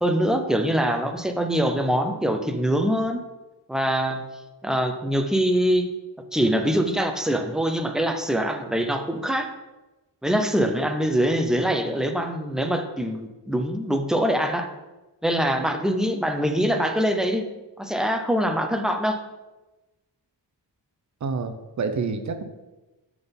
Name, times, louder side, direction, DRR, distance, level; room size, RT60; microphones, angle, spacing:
voice 1, 0.0-3.2 3.7-4.2 4.6-5.9 6.3-9.5 10.2-14.7 15.2-17.5 17.8-19.2, equal, ahead, 5 dB, 0.5 m, -23 dB
voice 2, 21.2-22.4, right 4 dB, 40° right, 8 dB, 0.6 m, -28 dB
6.0 x 3.8 x 5.3 m, 1.1 s
wide cardioid pair, 110°, 43 cm